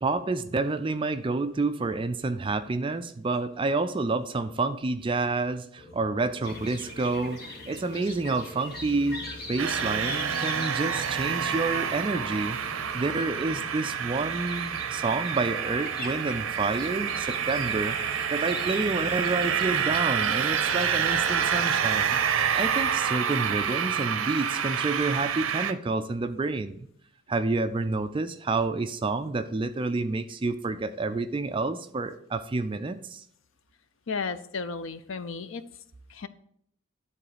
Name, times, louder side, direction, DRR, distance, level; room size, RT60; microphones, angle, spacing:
voice 1, 0.0-9.2 9.5-26.9 27.3-33.2, right 3 dB, 25° right, 10 dB, 0.3 m, -29 dB
sound 1, 5.8-23.0, equal, 15° left, 1.4 m, -48 dB
sound 2, 6.4-21.8, left 2 dB, 45° left, 2.0 m, -43 dB
sound 3, 9.6-25.7, right 8 dB, 80° right, 0.6 m, -28 dB
voice 2, 34.1-35.6 36.1-36.3, left 4 dB, 70° left, 12 dB, 0.5 m, -33 dB
10.0 x 3.9 x 4.9 m, 0.69 s
head